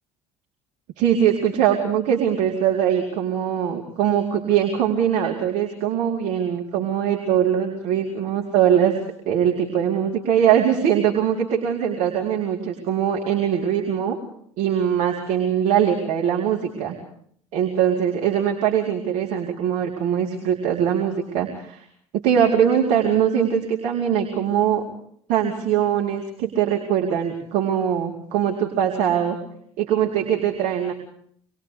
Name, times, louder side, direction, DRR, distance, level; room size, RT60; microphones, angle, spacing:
voice 1, 1.0-9.0 9.2-14.2 14.6-17.0 17.5-21.8 22.1-24.8 25.3-29.4 29.8-30.9, right 9 dB, 65° right, -1 dB, 4.4 m, -21 dB
27.0 x 22.5 x 5.1 m, 0.62 s
hypercardioid pair, 70°, 15 cm